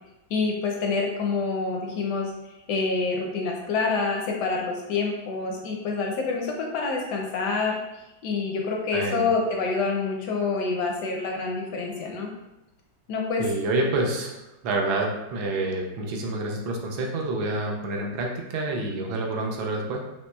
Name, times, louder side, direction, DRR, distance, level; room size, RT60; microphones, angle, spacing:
voice 1, 0.3-7.8 8.2-12.3 13.1-13.4, left 4 dB, 75° left, 0 dB, 1.0 m, -27 dB
voice 2, 8.9-9.3 13.4-20.0, right 2 dB, 85° right, 1 dB, 1.4 m, -28 dB
4.2 x 3.0 x 2.2 m, 0.96 s
omnidirectional pair, 2.1 m